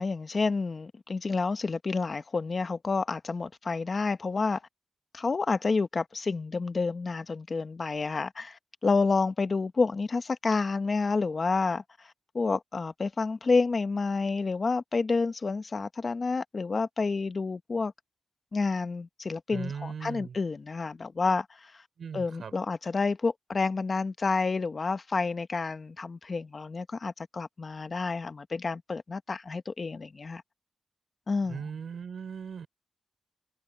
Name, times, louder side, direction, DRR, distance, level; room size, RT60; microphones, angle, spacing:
voice 1, 0.0-4.6 5.1-17.9 18.5-21.7 22.1-30.4 31.3-31.7, left 4 dB, 50° left, 1.1 m, -29 dB
voice 2, 19.5-20.4 22.0-22.5 31.5-32.7, right 6 dB, 80° right, 6.2 m, -38 dB
cardioid pair, 75°, 0 cm